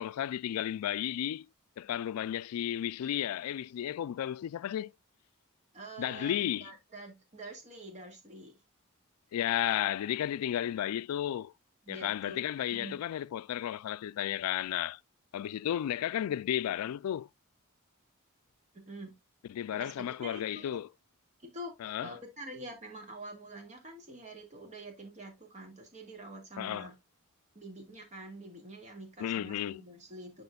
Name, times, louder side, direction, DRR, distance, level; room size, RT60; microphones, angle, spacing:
voice 1, 0.0-1.5 1.8-4.9 6.0-6.7 9.3-11.5 11.9-15.0 15.3-17.3 19.5-20.9 21.8-22.1 26.6-26.9 29.2-29.8, left 11 dB, 80° left, 0.3 m, -33 dB
voice 2, 5.7-6.3 6.6-8.6 11.8-13.0 18.7-19.1 19.7-20.8 21.4-21.8 22.0-26.9 27.6-30.4, right 1 dB, 35° right, 1.9 m, -46 dB
10.5 x 4.3 x 2.3 m
head